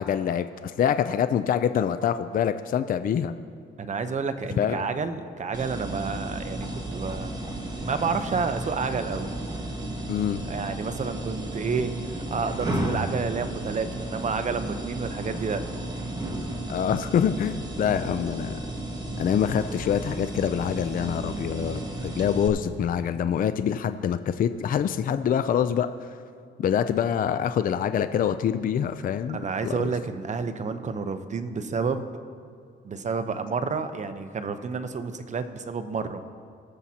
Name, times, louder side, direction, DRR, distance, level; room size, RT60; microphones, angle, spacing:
voice 1, 0.0-3.3 4.6-4.8 10.1-10.4 16.7-18.6 19.2-25.9 26.6-29.4 29.6-29.7, left 8 dB, 45° left, 11 dB, 0.4 m, -25 dB
voice 2, 3.8-7.3 7.8-9.3 10.5-15.6 29.3-32.1 32.8-36.3, right 5 dB, 35° right, 9 dB, 0.8 m, -30 dB
sound 1, 5.5-22.5, right 1 dB, 20° right, 1.5 m, -33 dB
21.5 x 7.4 x 2.8 m, 2.2 s
cardioid pair, 90°, 20 cm